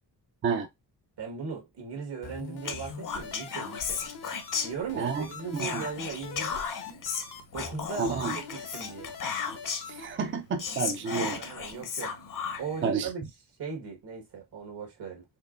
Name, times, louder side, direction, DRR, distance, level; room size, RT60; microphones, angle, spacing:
voice 1, 1.2-4.0 4.6-6.7 7.5-9.1 11.0-12.2 12.6-13.2 13.6-15.2, right 6 dB, 75° right, 1.5 m, -38 dB
sound 1, 2.2-10.1, left 5 dB, 75° left, 1.0 m, -43 dB
Whispering, 2.6-5.2 5.5-10.0 10.3-10.4 10.6-12.8, left 6 dB, 50° left, 0.8 m, -35 dB
voice 2, 8.0-8.3 9.9-11.4 12.8-13.1, right 5 dB, 30° right, 0.4 m, -30 dB
4.4 x 2.9 x 2.4 m
wide cardioid pair, 130°, 40 cm